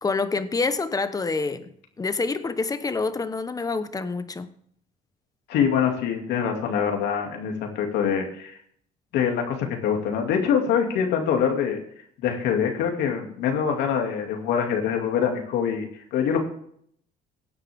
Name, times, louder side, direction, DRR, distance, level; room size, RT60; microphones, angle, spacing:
voice 1, 0.0-4.5, left 4 dB, 20° left, 1.1 m, -27 dB
voice 2, 5.5-8.6 9.1-11.8 12.2-16.4, left 7 dB, 85° left, 2.5 m, -24 dB
17.0 x 10.0 x 3.6 m
cardioid pair, 110°, 17 cm